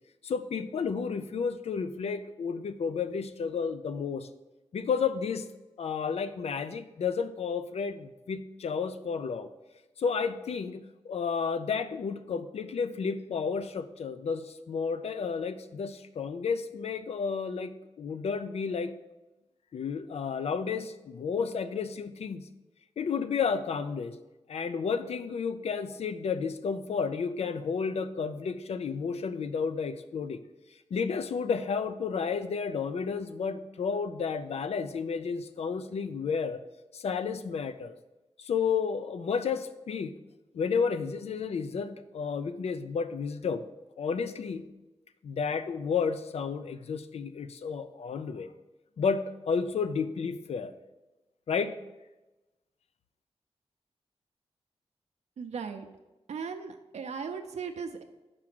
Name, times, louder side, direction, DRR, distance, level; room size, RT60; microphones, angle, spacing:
voice 1, 0.2-4.3 4.7-5.4 5.8-9.5 10.0-18.9 19.7-22.4 23.0-24.1 24.5-30.4 30.9-36.6 36.9-37.9 38.4-40.2 40.5-43.6 44.0-44.7 45.2-48.5 49.0-50.7 51.5-51.8, left 5 dB, 70° left, 11 dB, 0.4 m, -31 dB
voice 2, 55.4-55.9 56.3-58.0, right 6 dB, 85° right, 5 dB, 0.5 m, -37 dB
5.9 x 4.9 x 6.0 m, 1.1 s
wide cardioid pair, 145°, 11 cm